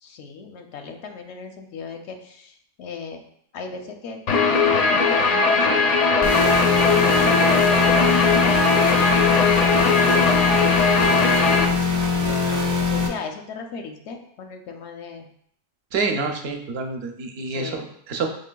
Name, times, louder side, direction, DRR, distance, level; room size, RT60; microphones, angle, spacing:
voice 1, 0.0-3.2 3.5-4.2 4.9-7.5 7.8-8.7 9.5-15.3 17.4-17.9, left 5 dB, 85° left, 5 dB, 0.9 m, -37 dB
Guitar, 4.3-11.6, left 4 dB, 55° left, 0.4 m, -19 dB
sound 1, 6.2-13.1, left 4 dB, 25° right, 0.4 m, -22 dB
voice 2, 15.9-18.3, right 4 dB, 70° right, 4 dB, 0.8 m, -27 dB
5.6 x 3.1 x 2.2 m, 0.67 s
omnidirectional pair, 1.1 m